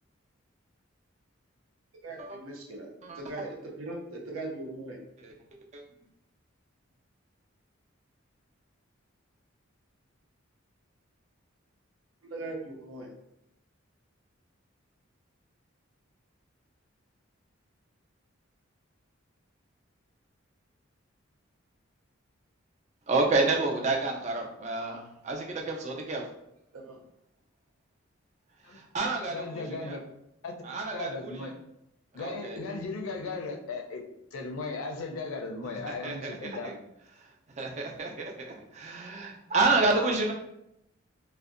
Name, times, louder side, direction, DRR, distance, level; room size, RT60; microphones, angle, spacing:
voice 1, 2.0-2.9 3.1-5.0 12.3-13.1 26.7-27.0, right 2 dB, 85° right, 0 dB, 0.6 m, -39 dB
voice 2, 23.1-26.2 28.7-30.0 30.6-31.5 32.1-32.6 35.9-36.2 36.4-36.7 37.6-40.3, right 3 dB, 35° right, 1 dB, 0.3 m, -29 dB
voice 3, 29.3-30.0 30.4-30.5 30.9-31.5 32.1-34.0 34.3-36.8, left 3 dB, 85° left, 1 dB, 0.4 m, -36 dB
2.5 x 2.1 x 2.4 m, 0.80 s
head